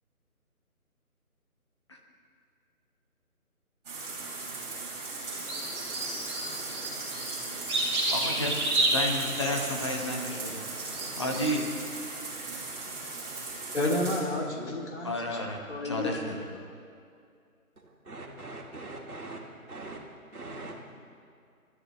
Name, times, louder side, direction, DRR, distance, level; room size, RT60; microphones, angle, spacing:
sound 1, 3.8-14.2, right 3 dB, 25° right, 3.9 m, -38 dB
sound 2, 5.3-11.6, right 2 dB, 10° right, 1.9 m, -32 dB
voice 1, 8.1-10.6 11.1-11.7 15.0-16.4, left 1 dB, 20° left, 0 dB, 1.0 m, -32 dB
voice 2, 13.7-15.4 15.7-16.3, left 1 dB, 50° left, -1 dB, 2.8 m, -31 dB
voice 3, 17.8-20.0 20.3-20.8, right 2 dB, 75° right, -1 dB, 2.4 m, -42 dB
29.5 x 13.0 x 3.1 m, 2.3 s
figure-of-eight pair, 160°, 44 cm